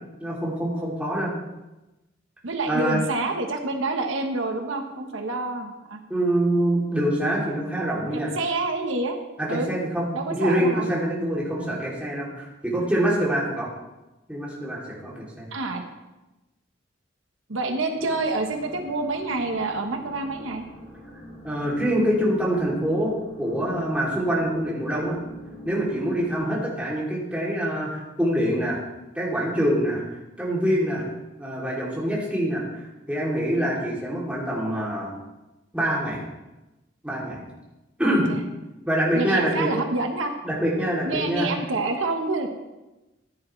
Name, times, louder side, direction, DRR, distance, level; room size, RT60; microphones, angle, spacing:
voice 1, 0.2-1.3 2.7-3.0 6.1-8.3 9.4-13.7 14.3-15.5 21.4-25.2 25.6-28.8 29.1-30.0 30.4-31.0 31.4-35.1 35.7-36.2 37.0-37.4 38.0-38.3 38.9-39.7 40.4-41.5, right 1 dB, 5° right, -6 dB, 3.0 m, -25 dB
voice 2, 2.4-6.0 8.1-9.2 9.5-9.7 10.1-10.9 11.5-11.8 15.5-15.8 17.5-20.6 38.0-38.4 39.1-40.3 41.0-42.5, right 3 dB, 85° right, 4 dB, 1.2 m, -28 dB
sound 1, 17.9-26.4, right 1 dB, 30° left, 4.8 m, -43 dB
15.0 x 9.9 x 3.3 m, 1.0 s
head